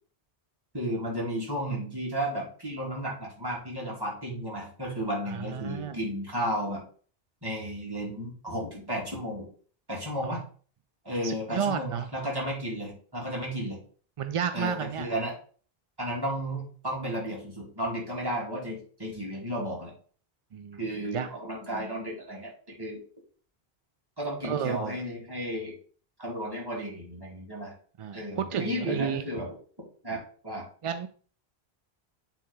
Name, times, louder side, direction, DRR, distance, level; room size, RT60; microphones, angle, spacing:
voice 1, 0.7-6.8 7.4-9.5 9.9-10.4 11.0-13.8 14.5-15.4 16.0-19.9 20.8-23.0 24.2-25.8 26.2-27.7 28.1-29.5 30.0-30.6, equal, 25° right, -4 dB, 2.5 m, -33 dB
voice 2, 5.3-6.0 10.2-10.4 11.2-12.1 14.2-15.1 20.5-20.8 21.1-21.3 24.4-25.0 28.0-29.2 30.8-31.1, right 7 dB, 55° right, 10 dB, 0.3 m, -31 dB
9.1 x 3.7 x 3.9 m, 0.43 s
omnidirectional pair, 1.0 m